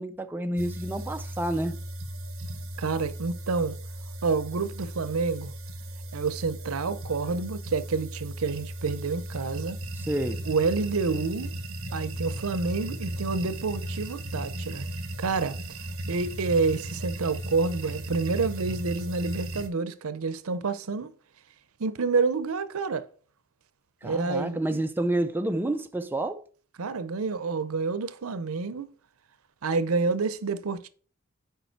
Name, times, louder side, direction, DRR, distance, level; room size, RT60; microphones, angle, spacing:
voice 1, 0.0-1.8 10.0-10.4 24.0-26.4, right 1 dB, 10° right, 0.4 m, -29 dB
sound 1, 0.6-19.7, right 1 dB, 65° right, 1.1 m, -36 dB
voice 2, 2.8-3.8 4.2-5.5 6.1-9.8 10.5-11.6 11.9-14.9 15.2-15.6 16.1-21.1 21.8-23.1 24.0-24.8 26.8-28.9 29.6-30.9, right 4 dB, 85° right, 0.6 m, -28 dB
6.8 x 4.9 x 4.5 m
head